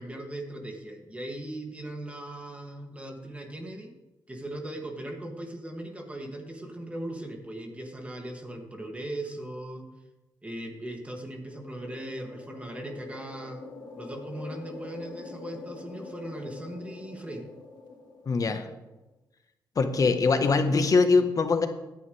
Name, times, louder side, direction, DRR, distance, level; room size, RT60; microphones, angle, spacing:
voice 1, 0.0-3.9 4.3-9.9 10.4-13.6 14.0-17.4, right 1 dB, 15° right, 2 dB, 2.6 m, -38 dB
sound 1, 11.3-18.9, left 4 dB, 90° left, 2.9 m, -45 dB
voice 2, 18.2-18.7 19.7-21.7, left 4 dB, 50° left, 7 dB, 1.4 m, -22 dB
16.0 x 10.5 x 3.5 m, 1.0 s
cardioid pair, 75°, 8 cm